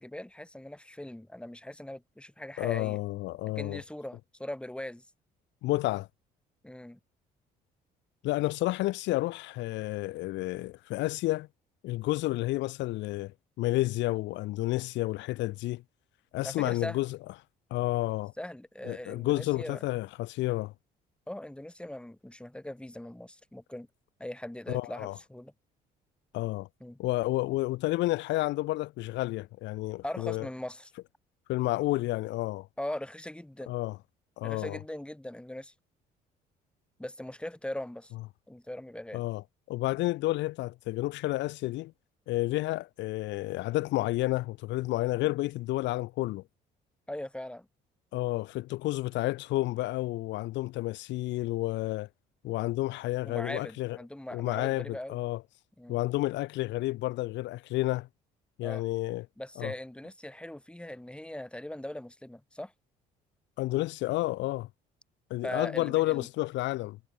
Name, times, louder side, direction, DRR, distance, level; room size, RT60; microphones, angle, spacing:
voice 1, 0.0-3.0 3.6-5.0 6.6-7.0 16.4-17.0 18.4-19.8 21.3-23.9 24.2-25.5 26.8-27.0 30.0-30.9 32.8-33.7 34.4-35.7 37.0-38.1 38.5-39.2 47.1-47.7 53.3-55.2 55.8-56.0 58.6-58.8 59.4-62.7 65.4-66.3, left 1 dB, 5° left, 2.3 m, -40 dB
voice 2, 2.6-3.8 5.6-6.1 8.2-11.5 11.8-15.8 16.3-17.2 17.7-18.3 18.8-20.7 24.7-25.2 26.3-26.7 27.0-30.5 31.5-32.7 33.7-34.0 34.4-34.8 39.1-41.9 42.3-46.4 48.1-52.1 52.4-54.0 54.3-55.4 55.9-58.1 58.6-59.3 59.6-59.7 63.6-64.7 65.3-67.0, left 18 dB, 75° left, 0.8 m, -30 dB
supercardioid pair, 70°, 19 cm